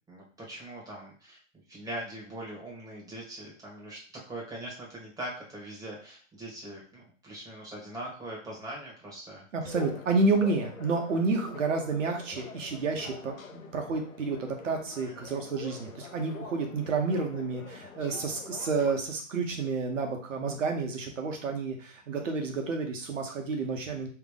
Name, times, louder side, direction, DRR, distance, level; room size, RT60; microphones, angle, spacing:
voice 1, 0.1-1.4 1.7-9.4 15.2-15.3, right 1 dB, 10° right, -4 dB, 1.8 m, -41 dB
voice 2, 9.5-24.1, right 3 dB, 70° right, 3 dB, 1.3 m, -30 dB
sound 1, 9.6-18.9, left 4 dB, 90° left, 0.8 m, -45 dB
3.5 x 3.4 x 3.7 m, 0.43 s
hypercardioid pair, 120°, 40 cm